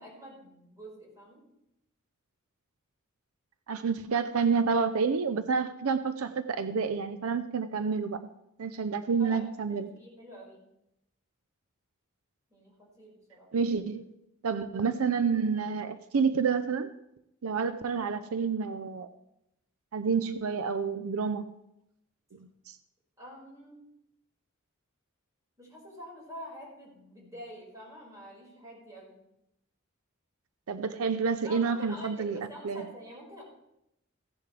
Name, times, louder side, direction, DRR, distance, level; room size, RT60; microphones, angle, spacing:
voice 1, 0.0-1.4 9.2-10.6 12.5-13.5 23.2-23.8 25.6-29.2 31.4-33.4, equal, 15° right, -4 dB, 5.1 m, -46 dB
voice 2, 3.7-8.3 8.6-9.9 13.5-14.0 14.4-16.9 17.4-19.1 19.9-21.6 22.7-22.8 30.7-32.9, right 5 dB, 80° right, 11 dB, 0.5 m, -29 dB
15.5 x 10.5 x 3.3 m, 0.84 s
head